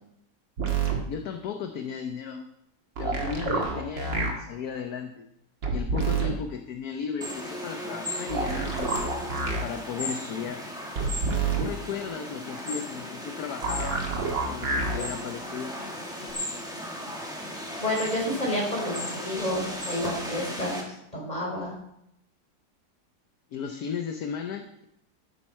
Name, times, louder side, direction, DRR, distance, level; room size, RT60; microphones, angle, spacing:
sound 1, 0.6-1.0 3.0-4.3 5.6-6.3 8.3-9.6 11.0-11.6 13.6-15.0 16.3-16.4, right 4 dB, 80° right, 2.7 m, -27 dB
voice 1, 1.1-2.5 3.0-5.3 5.7-9.1 9.6-10.7 11.6-14.1 14.5-15.8 23.5-24.8, left 6 dB, 60° left, 6 dB, 1.3 m, -35 dB
sound 2, 7.2-20.8, equal, ahead, 2.5 m, -36 dB
voice 2, 17.8-20.8 21.1-21.7, left 1 dB, 20° left, -2 dB, 5.2 m, -29 dB
14.0 x 12.0 x 4.5 m, 0.78 s
omnidirectional pair, 1.9 m